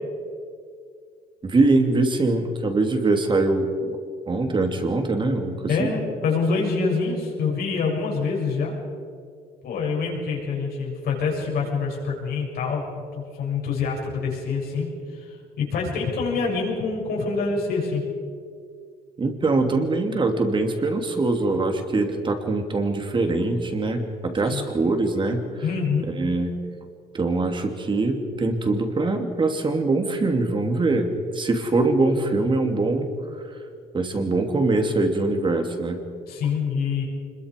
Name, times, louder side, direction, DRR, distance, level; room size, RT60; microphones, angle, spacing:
voice 1, 1.4-3.7 4.3-5.9 19.2-25.4 26.2-26.6 27.1-33.1 33.9-36.0, right 2 dB, 30° right, 5 dB, 2.9 m, -23 dB
voice 2, 5.7-8.8 9.6-18.0 24.5-24.7 25.6-26.1 36.3-37.0, left 4 dB, 65° left, -2 dB, 6.9 m, -26 dB
26.0 x 22.0 x 5.4 m, 2.2 s
cardioid pair, 110°, 17 cm